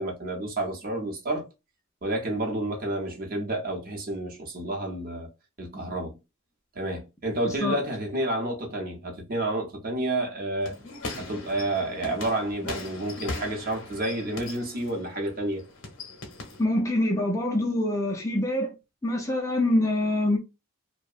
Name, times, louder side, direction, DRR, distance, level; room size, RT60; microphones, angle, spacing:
voice 1, 0.0-1.5 2.0-5.3 5.6-6.2 6.7-10.8 11.2-15.6, right 1 dB, 40° right, 0.7 m, -30 dB
sound 1, 10.6-16.6, left 2 dB, 55° left, 0.7 m, -39 dB
voice 2, 16.6-18.7 19.0-20.4, left 1 dB, 15° left, 0.4 m, -25 dB
2.7 x 2.0 x 2.4 m
head